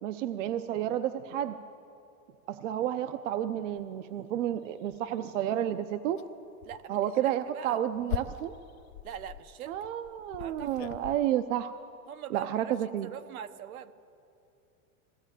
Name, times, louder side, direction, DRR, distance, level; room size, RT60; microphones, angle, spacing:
voice 1, 0.0-1.6 2.5-6.2 6.9-8.6 9.7-11.7 12.3-13.1, right 11 dB, 60° right, 10 dB, 0.8 m, -31 dB
sound 1, 3.8-3.9 4.4-4.5 4.9-5.3 6.1-6.3 6.6-6.8 7.4-11.2, left 13 dB, 50° left, 0.5 m, -41 dB
voice 2, 6.6-7.8 9.0-9.8 10.4-10.9 12.1-12.7 13.0-13.9, right 10 dB, 80° right, 10 dB, 1.2 m, -42 dB
20.5 x 16.5 x 9.1 m, 2.7 s
supercardioid pair, 170°, 42 cm